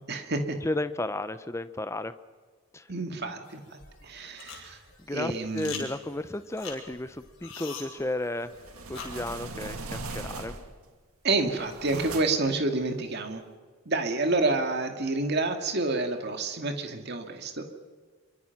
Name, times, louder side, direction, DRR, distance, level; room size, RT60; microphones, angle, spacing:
voice 1, 0.1-0.6 2.9-4.8 5.1-5.9 11.2-13.4 13.9-17.6, right 2 dB, 45° right, 5 dB, 2.3 m, -29 dB
voice 2, 0.6-2.1 2.7-2.9 5.0-8.6 8.9-10.5, left 2 dB, 10° left, 12 dB, 0.8 m, -33 dB
sound 1, 3.4-9.9, left 6 dB, 55° left, 6.1 m, -44 dB
sound 2, 8.4-10.8 11.3-12.6, right 3 dB, 75° right, 2.3 m, -39 dB
26.5 x 24.0 x 6.0 m, 1.5 s
head